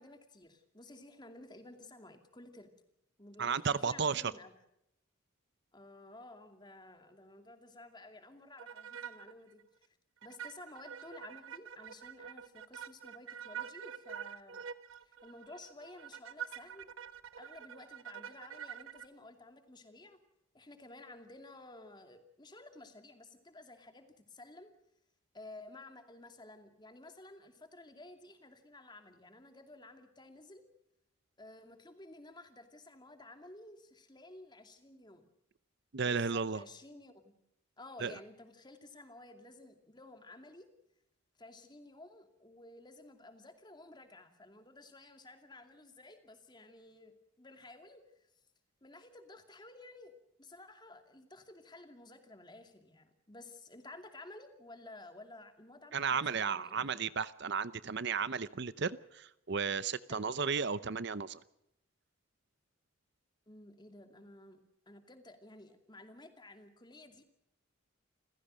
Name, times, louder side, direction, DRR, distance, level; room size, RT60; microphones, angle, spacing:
voice 1, 0.0-2.7 3.2-4.5 5.7-10.0 10.2-14.7 15.0-16.9 17.4-20.2 20.5-24.7 25.3-30.6 31.4-35.3 36.0-37.3 37.8-40.7 41.4-48.3 48.8-57.0 60.1-60.3 63.5-64.6 64.9-67.2, left 2 dB, 20° left, 7 dB, 2.5 m, -54 dB
voice 2, 3.4-4.2 35.9-36.6 38.0-38.1 55.9-61.4, right 5 dB, 55° right, 16 dB, 0.7 m, -34 dB
sound 1, 8.6-9.3 9.6-9.7 10.2-19.1, right 8 dB, 70° right, 1.3 m, -46 dB
29.0 x 16.0 x 6.3 m, 0.83 s
head